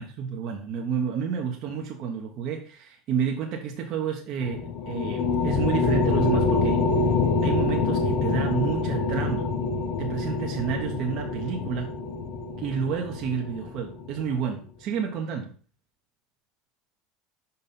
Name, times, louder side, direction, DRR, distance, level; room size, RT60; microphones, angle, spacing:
voice 1, 0.0-6.8 7.4-9.5 10.0-11.9 12.6-15.5, right 7 dB, 55° right, 1 dB, 1.1 m, -30 dB
sound 1, 4.4-14.2, left 4 dB, 60° left, 1.0 m, -26 dB
5.5 x 5.3 x 4.3 m, 0.41 s
hypercardioid pair, 85°, 0 cm